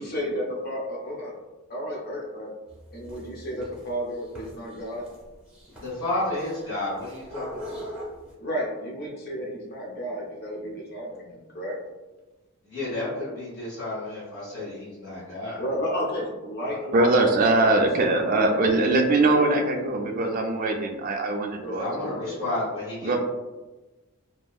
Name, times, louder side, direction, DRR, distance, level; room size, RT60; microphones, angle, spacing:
voice 1, 0.0-1.3 1.7-2.5 2.9-5.1 8.4-11.8 15.6-17.2 17.5-18.6 19.2-19.8 21.6-22.6, equal, 45° left, -2 dB, 0.4 m, -32 dB
sound 1, 2.7-8.3, equal, 5° right, 0.7 m, -41 dB
voice 2, 5.8-7.9 12.7-15.6 16.6-16.7 21.7-23.2, left 2 dB, 70° left, -12 dB, 1.2 m, -31 dB
voice 3, 16.9-21.9 23.0-23.2, right 2 dB, 40° right, 3 dB, 0.3 m, -22 dB
2.7 x 2.3 x 2.3 m, 1.2 s
head